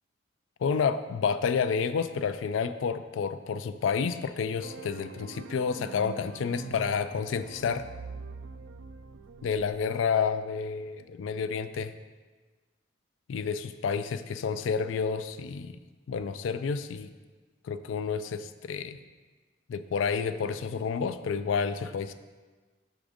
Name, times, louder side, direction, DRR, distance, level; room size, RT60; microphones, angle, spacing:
voice 1, 0.6-7.9 9.4-11.9 13.3-15.8 16.1-17.1 17.6-19.0 19.7-22.1, left 6 dB, 85° left, 11 dB, 0.3 m, -30 dB
sound 1, 4.6-9.7, right 4 dB, 85° right, 0.4 m, -44 dB
5.9 x 3.8 x 5.0 m, 1.4 s
head